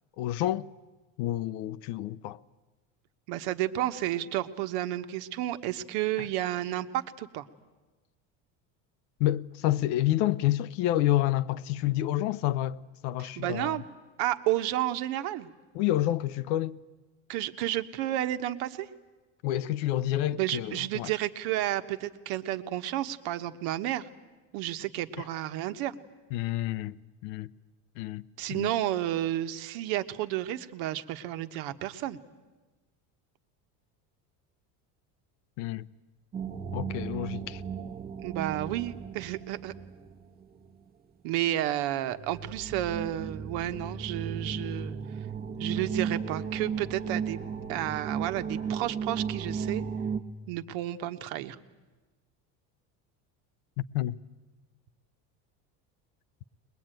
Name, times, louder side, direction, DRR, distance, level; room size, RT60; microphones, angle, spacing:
voice 1, 0.2-0.7 1.2-2.4 9.2-13.8 15.7-16.8 19.4-21.1 25.2-25.3 26.3-27.0 27.2-27.5 28.0-28.2 28.5-28.7 35.6-35.9 36.7-37.6 53.8-54.2, left 14 dB, 75° left, 0.8 m, -29 dB
voice 2, 3.3-7.4 13.2-13.8 14.2-15.5 17.3-18.9 20.3-24.0 24.5-25.9 28.4-32.2 38.2-39.7 41.2-45.0 45.6-49.8 50.5-51.5, right 13 dB, 70° right, 1.3 m, -31 dB
sound 1, 36.3-40.7 42.1-50.2, right 6 dB, 25° right, 1.1 m, -35 dB
21.5 x 21.5 x 9.1 m
cardioid pair, 130°, 39 cm